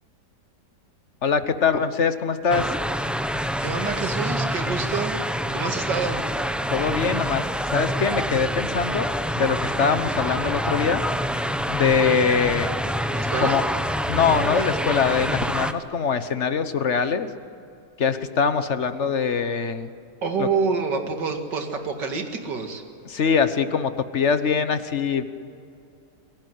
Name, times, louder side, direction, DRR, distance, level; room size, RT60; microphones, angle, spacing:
voice 1, 1.2-2.7 6.7-9.1 9.3-11.0 11.7-12.7 13.4-13.6 14.1-17.3 18.0-19.9 20.4-20.5 23.1-25.2, left 6 dB, 45° left, 11 dB, 1.3 m, -23 dB
sound 1, 2.5-15.7, equal, ahead, 0.4 m, -26 dB
voice 2, 3.6-5.2 5.5-6.2 13.1-13.6 20.2-22.8, right 5 dB, 80° right, 4 dB, 2.8 m, -27 dB
26.0 x 18.0 x 9.5 m, 2.5 s
omnidirectional pair, 1.9 m